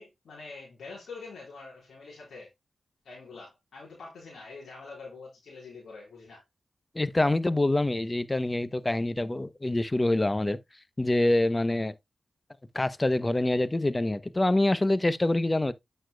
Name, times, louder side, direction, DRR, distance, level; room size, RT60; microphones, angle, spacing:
voice 1, 0.0-2.5 3.0-6.4, left 4 dB, 85° left, 4.2 m, -45 dB
voice 2, 6.9-10.6 11.0-11.9 12.7-15.7, left 1 dB, 25° left, 0.8 m, -25 dB
9.1 x 6.6 x 2.3 m
cardioid pair, 45°, 0 cm